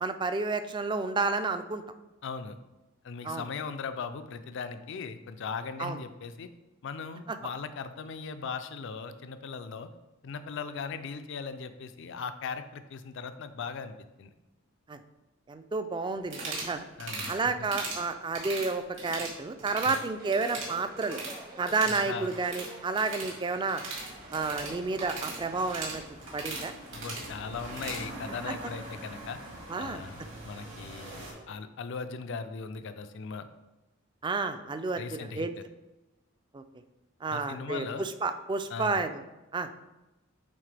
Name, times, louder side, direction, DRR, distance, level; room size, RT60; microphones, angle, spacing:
voice 1, 0.0-1.8 3.2-3.4 5.8-6.0 14.9-15.0 15.5-16.8 17.3-21.2 21.6-23.8 24.3-26.0 26.3-26.7 28.5-28.6 29.7-30.0 31.1-31.2 34.2-35.5 36.5-36.6 37.2-39.2 39.5-39.7, right 4 dB, 25° right, 9 dB, 0.3 m, -31 dB
voice 2, 2.2-2.6 3.0-6.5 6.8-9.9 10.2-14.3 17.0-17.4 19.8-20.0 21.9-22.3 26.9-29.4 29.8-33.5 34.9-35.6 37.3-38.1 38.7-39.1, left 5 dB, 65° left, 10 dB, 0.4 m, -38 dB
sound 1, 16.2-16.7 17.0-17.3 17.6-18.0 18.3-19.3 19.6-20.0 20.3-21.4 21.6-28.0, right 3 dB, 70° right, 2.2 m, -39 dB
sound 2, 20.2-25.7, right 2 dB, 45° right, 1.0 m, -48 dB
sound 3, 23.9-31.3, right 1 dB, 85° right, 1.9 m, -45 dB
8.5 x 3.6 x 3.3 m, 1.1 s
head